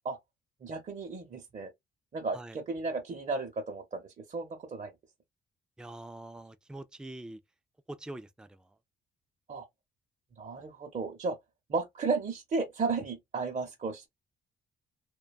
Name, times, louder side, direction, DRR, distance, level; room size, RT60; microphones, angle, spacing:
voice 1, 0.6-1.7 2.1-4.9 9.5-9.7 10.4-11.4 11.7-14.1, right 4 dB, 40° right, 0.7 m, -34 dB
voice 2, 5.8-7.4 7.9-8.7, right 1 dB, 5° right, 0.3 m, -44 dB
2.6 x 2.2 x 2.2 m
cardioid pair, 90°, 20 cm